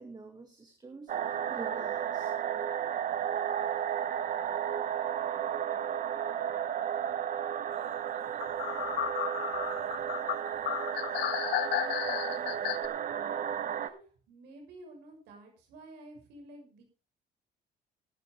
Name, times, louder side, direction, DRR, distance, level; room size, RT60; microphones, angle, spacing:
voice 1, 0.0-2.3, right 4 dB, 25° right, 5 dB, 2.2 m, -47 dB
sound 1, 1.1-13.9, right 9 dB, 50° right, 1.0 m, -33 dB
sound 2, 8.4-12.9, left 14 dB, 75° left, 1.0 m, -33 dB
voice 2, 11.6-13.4 13.8-16.8, right 2 dB, 90° right, 2 dB, 6.5 m, -52 dB
15.0 x 11.0 x 3.5 m, 0.35 s
cardioid pair, 110°, 17 cm